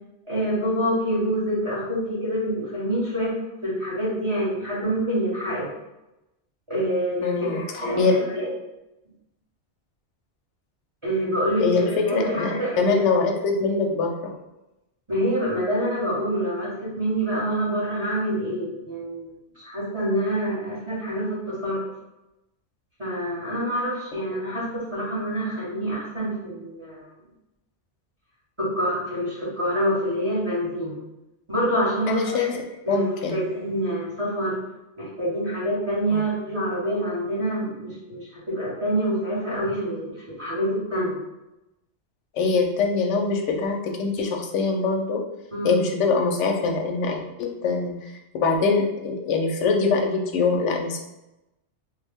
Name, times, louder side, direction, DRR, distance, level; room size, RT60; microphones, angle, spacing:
voice 1, 0.3-3.3 3.6-5.7 6.7-8.5 11.0-13.0 15.1-21.9 23.0-27.0 28.6-31.0 31.5-32.6 32.9-34.6 35.0-41.1 45.5-45.8, equal, 25° right, -9 dB, 1.2 m, -26 dB
voice 2, 7.2-7.6 8.0-8.1 11.6-14.3 32.1-32.6 32.9-33.4 36.1-36.2 42.3-45.2 45.6-51.0, left 4 dB, 85° left, 2 dB, 0.9 m, -23 dB
3.4 x 2.2 x 3.5 m, 0.95 s
omnidirectional pair, 1.2 m